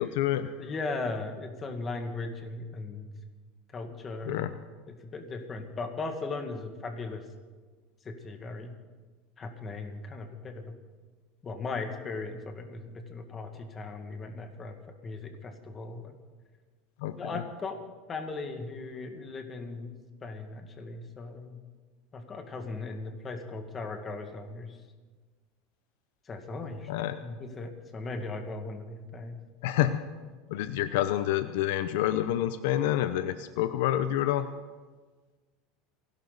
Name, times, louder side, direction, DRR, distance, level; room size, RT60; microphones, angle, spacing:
voice 1, 0.0-0.5 4.3-4.5 17.0-17.2 26.9-27.2 29.6-30.0 30.5-34.5, left 12 dB, 75° left, 11 dB, 0.7 m, -28 dB
voice 2, 0.6-3.1 3.7-4.5 4.9-7.2 8.0-8.8 9.4-10.7 11.4-14.8 15.0-16.1 17.2-17.8 18.1-19.9 20.2-21.6 22.1-24.8 26.3-26.9 27.2-29.4, left 3 dB, 25° left, 5 dB, 2.0 m, -38 dB
28.5 x 12.0 x 4.1 m, 1.4 s
supercardioid pair, 140°, 0 cm